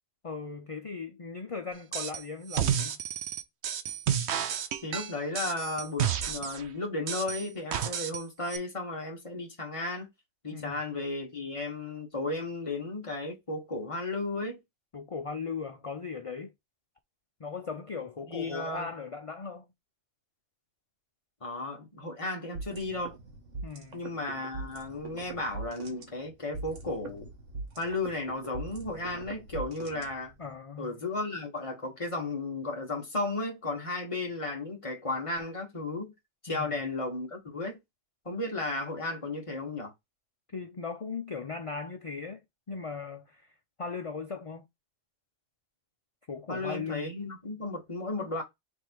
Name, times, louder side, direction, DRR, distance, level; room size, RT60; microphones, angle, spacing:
voice 1, 0.2-3.0 10.5-10.8 14.9-16.5 17.4-19.7 23.6-24.0 30.4-30.9 36.5-36.8 40.5-42.4 42.7-43.5 43.8-44.7 46.3-47.1, left 5 dB, 55° left, 0.3 m, -38 dB
sound 1, 1.9-2.2 2.5-6.6 7.1-8.2 8.5-8.6, right 9 dB, 70° right, 0.9 m, -31 dB
voice 2, 4.8-10.1 10.4-14.6 18.3-18.9 21.4-23.1 23.9-27.3 27.8-30.3 30.8-36.1 36.4-37.8 38.2-39.9 46.5-48.4, left 2 dB, 25° left, 1.4 m, -34 dB
sound 2, 22.6-30.5, right 3 dB, 90° right, 1.5 m, -42 dB
3.5 x 3.4 x 4.5 m
omnidirectional pair, 1.2 m